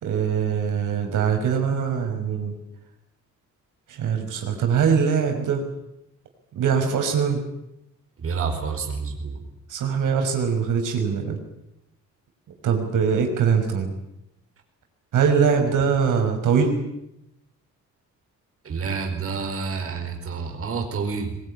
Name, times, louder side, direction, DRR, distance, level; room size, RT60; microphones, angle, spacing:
voice 1, 0.0-2.5 4.0-5.6 6.6-7.4 9.7-11.4 12.6-13.9 15.1-16.8, right 6 dB, 90° right, 4 dB, 5.8 m, -22 dB
voice 2, 8.2-9.4 18.6-21.4, right 5 dB, 45° right, 4 dB, 4.7 m, -29 dB
22.5 x 22.0 x 9.9 m, 0.82 s
wide cardioid pair, 165°, 30 cm